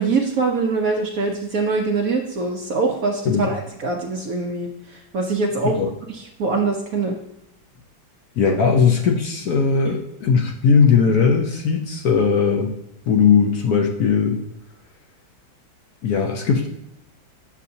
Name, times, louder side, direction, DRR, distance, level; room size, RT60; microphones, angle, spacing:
voice 1, 0.0-5.8 6.1-7.2, right 4 dB, 65° right, 1 dB, 0.9 m, -23 dB
voice 2, 8.4-12.8 13.1-14.4 16.0-16.7, left 6 dB, 65° left, 1 dB, 1.1 m, -18 dB
8.4 x 6.6 x 2.7 m, 0.82 s
omnidirectional pair, 2.1 m